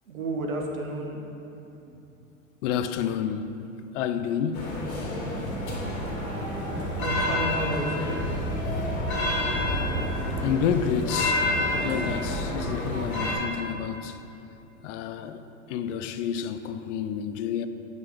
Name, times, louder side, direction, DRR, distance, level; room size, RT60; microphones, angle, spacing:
voice 1, 0.0-2.0 7.0-8.3, right 1 dB, 85° right, 1.4 m, -32 dB
voice 2, 2.6-3.6 3.9-4.7 10.4-14.2 14.8-15.4 15.7-17.7, left 8 dB, 60° left, 0.7 m, -29 dB
sound 1, 4.5-13.3, left 1 dB, 80° left, 2.3 m, -28 dB
9.6 x 6.1 x 5.2 m
hypercardioid pair, 105°, 41 cm